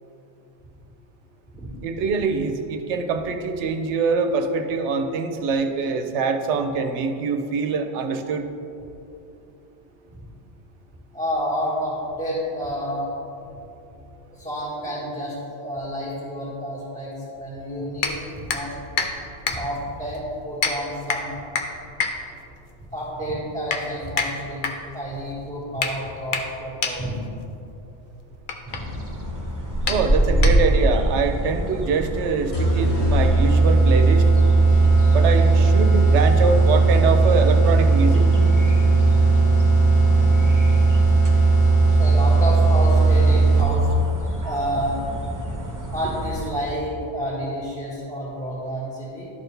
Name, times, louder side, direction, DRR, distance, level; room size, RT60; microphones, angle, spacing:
voice 1, 1.8-8.5 29.9-34.2 35.1-38.2, right 4 dB, 90° right, 6 dB, 0.9 m, -24 dB
voice 2, 11.1-13.1 14.3-18.8 19.5-21.4 22.9-24.6 24.9-27.1 28.6-28.8 40.0-40.5 42.0-44.0 44.4-45.2 45.9-49.3, equal, 5° left, -11 dB, 1.6 m, -29 dB
sound 1, 18.0-31.0, left 4 dB, 55° left, 0.7 m, -30 dB
sound 2, 28.7-46.5, equal, 20° right, 0.8 m, -27 dB
sound 3, 32.5-43.9, right 3 dB, 70° left, 1.3 m, -17 dB
12.0 x 4.5 x 3.3 m, 2.8 s
omnidirectional pair, 1.1 m